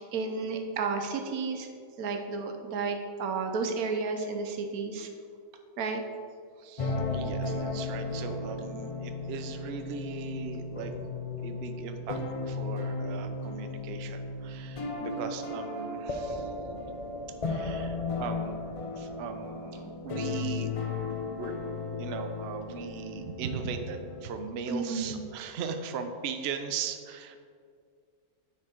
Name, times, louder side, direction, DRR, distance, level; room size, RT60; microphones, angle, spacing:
voice 1, 0.0-1.7 2.0-5.1 5.8-6.0 23.2-23.5 24.7-25.2, right 4 dB, 85° right, 4 dB, 1.3 m, -32 dB
voice 2, 6.6-10.9 11.4-16.5 17.5-18.6 19.0-20.7 21.4-21.5 22.0-27.4, right 6 dB, 55° right, 6 dB, 0.7 m, -39 dB
sound 1, 6.8-24.2, left 3 dB, 60° left, 0.3 m, -35 dB
9.7 x 4.9 x 4.4 m, 2.2 s
omnidirectional pair, 1.5 m